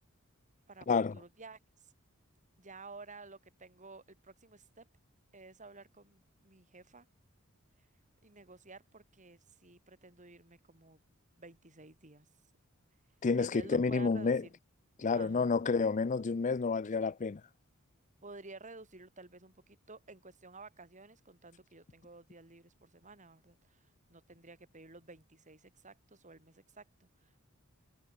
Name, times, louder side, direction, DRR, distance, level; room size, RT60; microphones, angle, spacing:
voice 1, 1.1-1.9 2.6-4.9 5.3-7.1 8.2-11.0 11.4-12.3 13.4-14.6 15.1-15.6 18.2-27.4, right 3 dB, 35° right, 5.0 m, -53 dB
voice 2, 13.2-14.4 15.0-17.4, left 4 dB, 35° left, 0.5 m, -29 dB
head